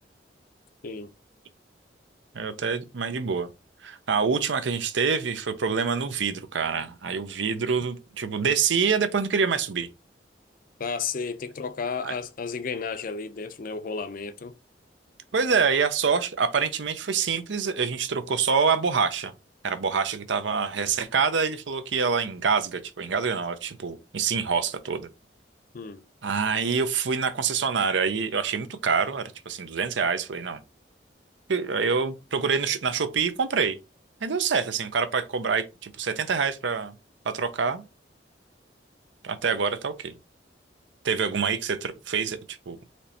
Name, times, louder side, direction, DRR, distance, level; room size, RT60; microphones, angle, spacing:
voice 1, 2.3-3.5 3.8-9.9 12.0-12.1 15.3-19.3 19.6-25.1 26.2-30.6 31.5-33.8 34.2-36.9 37.2-37.8 39.2-40.2 41.0-42.8, right 5 dB, 85° right, 0.6 m, -26 dB
voice 2, 10.8-14.5 25.7-26.0, left 5 dB, 50° left, 0.5 m, -33 dB
4.3 x 3.2 x 2.7 m
head